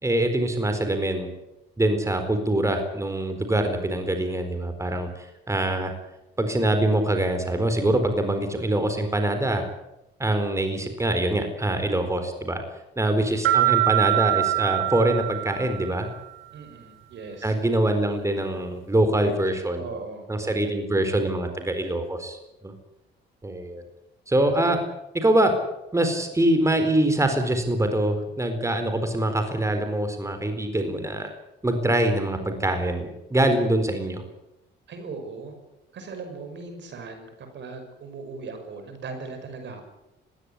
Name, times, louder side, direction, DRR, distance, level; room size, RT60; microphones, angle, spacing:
voice 1, 0.0-1.3 1.8-5.9 6.4-9.7 10.2-12.6 13.0-16.1 17.4-19.9 20.3-22.7 23.4-23.8 24.3-24.8 25.1-25.5 25.9-31.3 31.6-34.2, right 1 dB, 15° right, 7 dB, 4.2 m, -24 dB
sound 1, 13.4-16.1, right 19 dB, 80° right, 3.1 m, -23 dB
voice 2, 16.5-17.5 19.2-19.4 19.8-20.6 34.9-35.5 35.9-39.8, right 4 dB, 65° right, 7 dB, 5.9 m, -39 dB
20.0 x 17.0 x 9.8 m, 0.92 s
cardioid pair, 90°, 20 cm